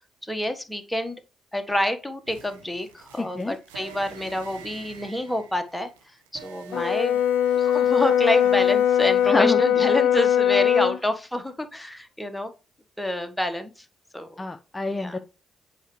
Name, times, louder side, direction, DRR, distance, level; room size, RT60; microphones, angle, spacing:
voice 1, 0.2-1.2 1.5-5.9 6.3-7.2 7.6-12.5 13.0-13.8 14.1-14.4 14.9-15.2, left 1 dB, 5° left, 7 dB, 1.3 m, -28 dB
sound 1, 2.3-9.3, right 7 dB, 85° right, 1.0 m, -46 dB
voice 2, 3.2-3.6 9.2-9.6 14.4-15.2, left 3 dB, 25° left, 7 dB, 0.7 m, -26 dB
Brass instrument, 6.7-11.0, left 10 dB, 70° left, 0.4 m, -20 dB
8.0 x 4.5 x 3.2 m, 0.32 s
hypercardioid pair, 45°, 0 cm